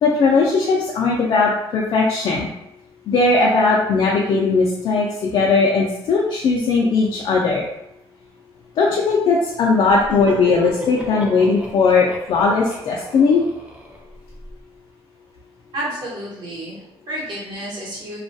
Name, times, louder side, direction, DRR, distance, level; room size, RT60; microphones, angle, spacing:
voice 1, 0.0-2.5 3.1-7.6 8.8-13.4, left 4 dB, 55° left, -3 dB, 0.3 m, -18 dB
Laughter, 9.8-14.5, right 1 dB, 15° right, 0.4 m, -34 dB
voice 2, 15.7-18.2, right 1 dB, 55° right, -6 dB, 1.0 m, -30 dB
2.3 x 2.1 x 2.6 m, 0.85 s
cardioid pair, 145°, 9 cm